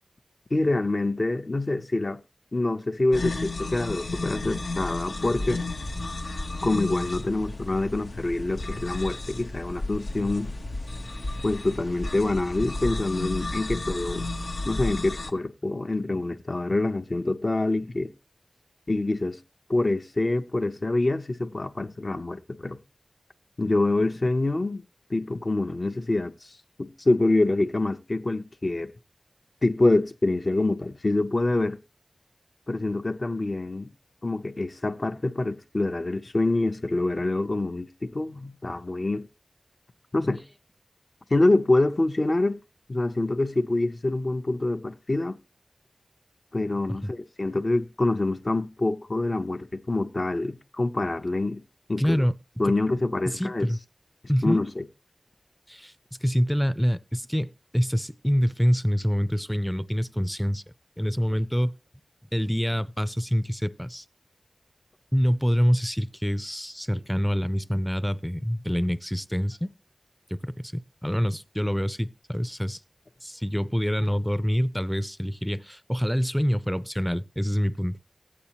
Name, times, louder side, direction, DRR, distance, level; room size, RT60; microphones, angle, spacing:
voice 1, 0.5-2.2 2.5-5.6 6.6-10.5 11.4-14.3 14.6-18.1 18.9-19.4 19.7-22.8 23.6-24.8 25.1-26.3 26.8-28.9 29.6-31.8 32.7-33.9 34.2-39.3 40.1-40.4 41.3-42.6 42.9-45.4 46.5-51.6 51.9-52.2 52.6-53.7 54.4-54.8, left 2 dB, 45° left, 0.7 m, -26 dB
sound 1, 3.1-15.3, left 2 dB, 75° left, 0.9 m, -33 dB
voice 2, 52.0-52.4 52.7-52.8 53.2-53.8 54.3-54.6 55.7-55.9 56.2-60.6 61.0-61.7 62.3-64.0 65.1-69.7 70.3-72.8 73.2-78.1, equal, ahead, 0.5 m, -26 dB
14.0 x 8.6 x 2.9 m
wide cardioid pair, 60°, 0 cm